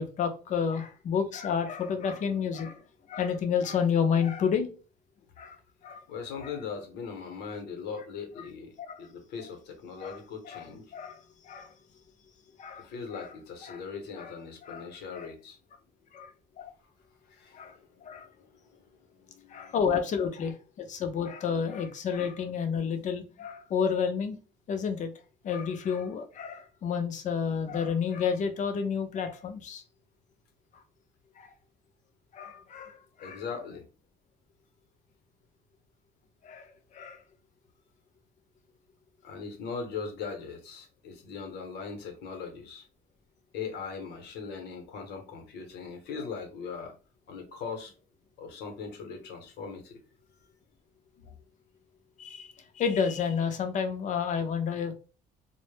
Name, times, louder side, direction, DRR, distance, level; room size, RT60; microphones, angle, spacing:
voice 1, 0.0-2.8 3.1-4.7 5.4-5.6 5.8-6.0 6.4-6.5 8.8-9.0 10.0-10.2 10.5-10.7 10.9-11.7 12.6-12.9 13.1-13.3 13.6-13.8 14.2-14.3 14.6-14.9 15.1-15.3 16.1-16.3 16.6-16.7 17.5-17.8 18.0-18.3 19.5-24.4 24.7-25.1 25.4-29.8 31.4-31.5 32.3-33.4 36.4-37.2 52.2-54.9, left 6 dB, 45° left, 0.5 m, -30 dB
voice 2, 6.1-10.9 12.8-15.6 17.2-19.7 33.2-33.8 39.2-42.9 43.5-46.9 47.3-47.9 48.4-50.0, left 5 dB, 80° left, 0.8 m, -40 dB
2.0 x 2.0 x 3.1 m
cardioid pair, 110°, 17 cm